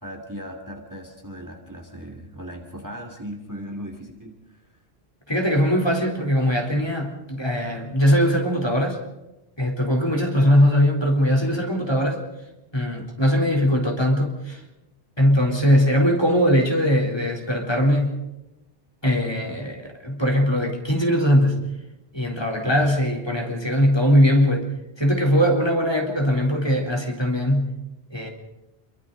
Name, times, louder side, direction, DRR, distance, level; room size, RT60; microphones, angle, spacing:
voice 1, 0.0-4.6 22.6-22.9, equal, 15° right, 3 dB, 2.6 m, -37 dB
voice 2, 5.3-9.0 9.6-12.2 12.7-14.6 15.2-18.2 19.0-21.6 22.1-24.7 25.0-27.7 28.1-28.3, equal, 25° left, 0 dB, 3.7 m, -20 dB
27.5 x 23.5 x 4.0 m, 0.98 s
omnidirectional pair, 1.1 m